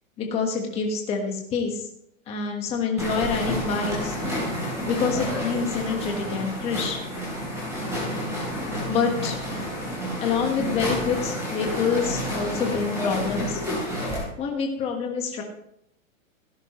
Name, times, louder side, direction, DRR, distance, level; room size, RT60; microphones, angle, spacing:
voice 1, 0.2-1.9 2.3-4.2 4.8-7.0 8.9-9.4 10.2-13.6 14.4-15.4, left 5 dB, 15° left, 2 dB, 1.4 m, -26 dB
sound 1, 3.0-14.2, equal, 5° right, 3.7 m, -30 dB
17.0 x 10.0 x 3.1 m, 0.76 s
supercardioid pair, 175°, 40 cm